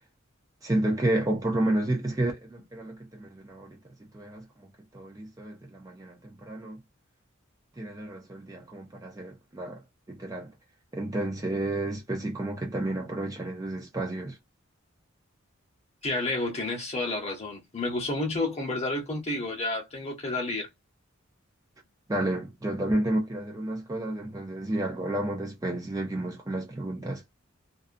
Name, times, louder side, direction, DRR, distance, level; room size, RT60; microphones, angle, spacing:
voice 1, 0.6-3.8 4.1-6.8 7.8-9.8 10.1-10.5 10.9-14.4 22.1-27.2, right 1 dB, 15° right, 0.5 m, -31 dB
voice 2, 16.0-20.7, left 2 dB, 30° left, 0.9 m, -30 dB
2.4 x 2.3 x 2.5 m
head